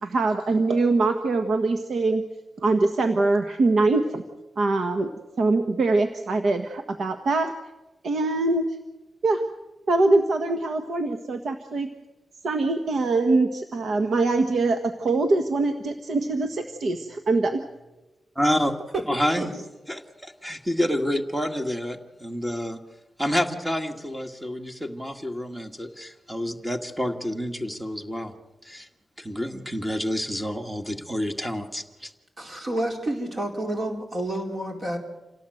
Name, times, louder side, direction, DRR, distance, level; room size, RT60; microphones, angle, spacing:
voice 1, 0.0-2.2 2.6-4.2 4.6-7.5 8.0-8.8 9.2-9.4 9.9-11.9 12.4-17.6, right 3 dB, 70° right, 6 dB, 1.5 m, -23 dB
voice 2, 18.4-18.7 19.1-19.5 19.9-22.8 23.2-28.3 28.6-28.9 29.2-32.1, equal, 10° right, 5 dB, 1.9 m, -28 dB
voice 3, 32.4-35.0, right 1 dB, 45° right, 2 dB, 4.3 m, -29 dB
27.5 x 17.5 x 8.0 m, 1.1 s
cardioid pair, 85°, 0 cm